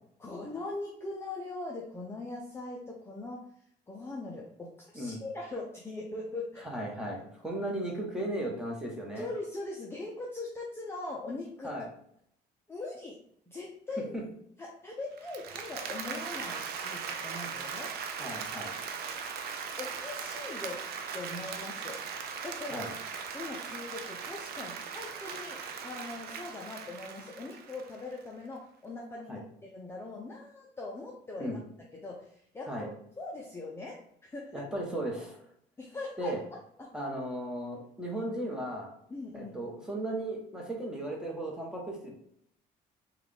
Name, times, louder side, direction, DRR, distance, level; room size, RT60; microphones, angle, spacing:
voice 1, 0.2-3.4 3.9-6.7 9.2-11.7 12.7-13.2 13.5-14.1 14.6-17.9 19.8-20.8 21.1-22.9 23.3-31.6 32.0-32.9 33.2-34.6 35.8-36.9 39.1-39.6, left 2 dB, 15° left, -2 dB, 0.5 m, -41 dB
voice 2, 6.6-9.3 11.6-11.9 14.1-14.2 18.2-18.8 22.7-22.9 29.3-29.4 31.4-31.6 32.7-32.9 34.5-35.4 36.2-36.4 36.9-38.9 39.3-42.2, right 1 dB, 5° right, -2 dB, 1.1 m, -36 dB
Applause, 15.2-28.2, right 6 dB, 70° right, 0.5 m, -39 dB
3.7 x 2.4 x 3.4 m, 0.69 s
cardioid pair, 110°, 17 cm